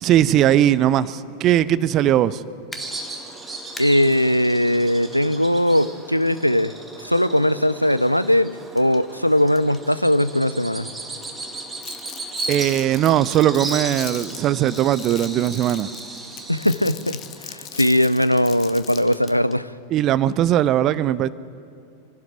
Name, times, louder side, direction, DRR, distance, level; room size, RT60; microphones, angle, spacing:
voice 1, 0.0-2.4 12.5-15.9 19.9-21.3, right 12 dB, 35° right, 0.6 m, -19 dB
sound 1, 2.7-2.8 3.8-3.9 5.9-6.0 8.8-9.0 9.6-9.9 11.2-11.5 12.0-12.3 14.1-14.4 14.8-15.1 16.7-19.6 20.0-20.1, left 3 dB, 10° left, 1.4 m, -44 dB
Bird vocalization bird call bird song, 2.7-18.7, right 2 dB, 10° right, 2.2 m, -36 dB
voice 2, 3.8-6.7 7.0-10.9 16.5-19.7, left 1 dB, 90° left, 0.5 m, -19 dB
Crumpling crinkling, 11.8-19.2, left 11 dB, 35° left, 1.2 m, -39 dB
25.0 x 12.5 x 9.1 m
figure-of-eight pair, 90°, 0 cm